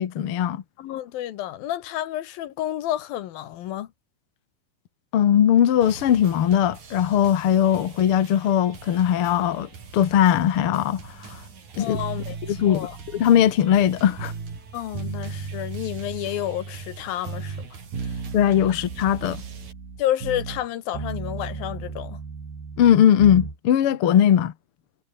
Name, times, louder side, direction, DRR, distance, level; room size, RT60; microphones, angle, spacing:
voice 1, 0.0-0.6 5.1-11.4 11.8-12.0 12.5-12.9 13.1-14.3 18.3-19.4 22.8-24.5, left 10 dB, 50° left, 1.8 m, -19 dB
voice 2, 0.8-3.9 11.8-13.0 14.7-17.8 18.0-18.1 20.0-22.2, left 13 dB, 80° left, 3.1 m, -30 dB
sound 1, 5.8-19.7, right 6 dB, 55° right, 5.2 m, -45 dB
sound 2, 11.9-14.6 14.9-17.0 17.2-20.7 20.9-23.6, right 5 dB, 90° right, 8.0 m, -35 dB
omnidirectional pair, 4.2 m